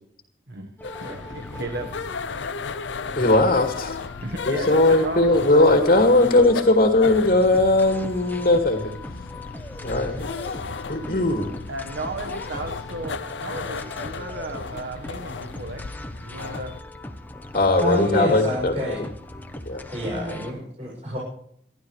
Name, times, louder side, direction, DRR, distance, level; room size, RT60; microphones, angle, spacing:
sound 1, 0.8-16.8, left 4 dB, 90° left, 0.6 m, -35 dB
sound 2, 0.8-20.5, left 1 dB, 10° left, 1.1 m, -40 dB
voice 1, 1.0-2.1 4.2-5.7 11.7-15.8 16.2-16.7, right 2 dB, 75° right, 3 dB, 1.4 m, -34 dB
voice 2, 3.2-4.0 4.5-8.9 9.8-10.3 10.9-11.5 17.5-19.0 19.7-19.8, left 2 dB, 50° left, 3 dB, 2.3 m, -19 dB
voice 3, 17.8-19.1 19.9-21.2, left 1 dB, 35° right, -7 dB, 7.0 m, -27 dB
28.5 x 12.0 x 3.3 m, 0.67 s
head